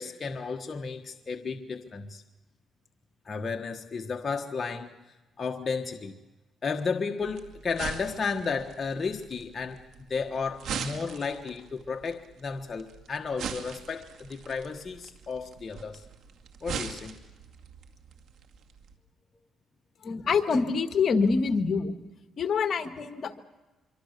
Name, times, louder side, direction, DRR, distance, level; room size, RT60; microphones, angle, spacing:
voice 1, 0.0-2.2 3.2-4.9 5.4-6.2 6.6-9.8 10.1-16.0 16.6-17.1, left 5 dB, 35° left, 4 dB, 1.4 m, -33 dB
sound 1, 7.2-18.9, right 7 dB, 75° right, 2.3 m, -42 dB
voice 2, 20.0-22.0 22.4-23.4, left 5 dB, 50° left, 8 dB, 1.7 m, -26 dB
25.5 x 24.5 x 6.7 m, 1.2 s
cardioid pair, 90°, 0 cm